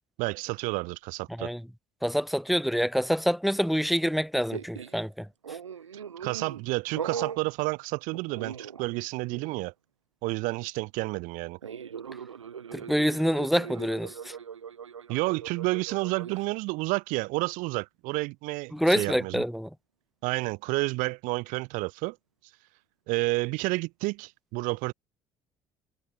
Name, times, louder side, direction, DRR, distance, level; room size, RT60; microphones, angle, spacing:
voice 1, 0.2-1.5 6.2-9.7 10.2-11.6 15.1-19.4 20.2-22.2 23.1-24.9, right 25 dB, 60° right, 0.9 m, -30 dB
voice 2, 2.0-5.3 12.7-14.4 18.7-19.7, equal, ahead, 2.2 m, -26 dB
sound 1, 4.5-5.0 5.4-6.6 7.0-7.4 8.1-9.0 9.3-9.6 11.6-16.5, right 7 dB, 80° right, 5.2 m, -40 dB
figure-of-eight pair, 55°, 15 cm